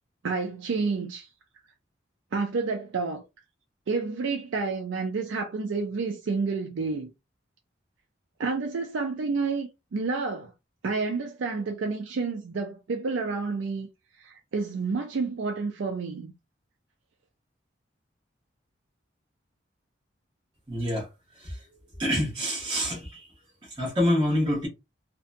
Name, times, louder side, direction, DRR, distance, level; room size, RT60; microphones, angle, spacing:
voice 1, 0.2-1.3 2.3-3.2 3.9-7.1 8.4-10.5 10.8-13.9 14.2-16.3, right 4 dB, 80° right, 0.4 m, -29 dB
voice 2, 20.7-21.1 21.4-21.6 22.0-23.3 23.6-24.7, equal, 25° right, 0.9 m, -27 dB
2.7 x 2.1 x 2.4 m
head